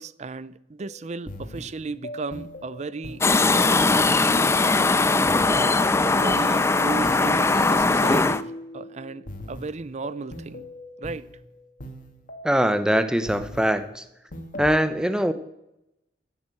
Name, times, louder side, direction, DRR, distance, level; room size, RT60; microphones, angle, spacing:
voice 1, 0.0-3.2 6.0-10.7 11.0-11.3, right 4 dB, 40° right, 0.5 m, -35 dB
sound 1, 0.8-13.9 14.3-14.8, left 1 dB, 50° left, 2.0 m, -40 dB
sound 2, 3.2-8.4, left 3 dB, 15° left, 0.4 m, -20 dB
voice 2, 12.4-14.0 14.6-15.3, equal, 5° right, 0.8 m, -22 dB
11.0 x 10.5 x 7.7 m
head